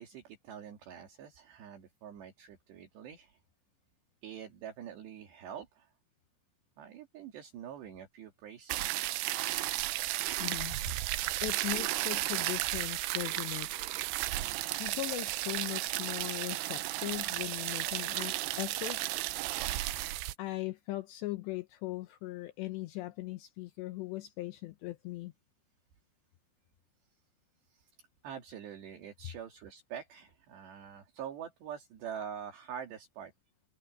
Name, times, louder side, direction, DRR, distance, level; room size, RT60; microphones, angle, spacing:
voice 1, 0.0-3.4 4.2-5.9 6.8-9.2 27.7-28.0 28.2-33.3, right 8 dB, 65° right, 4.7 m, -45 dB
sound 1, 8.7-20.3, right 17 dB, 80° right, 2.4 m, -34 dB
voice 2, 10.4-13.7 14.7-19.0 19.9-25.3, left 18 dB, 80° left, 2.7 m, -39 dB
omnidirectional pair, 5.6 m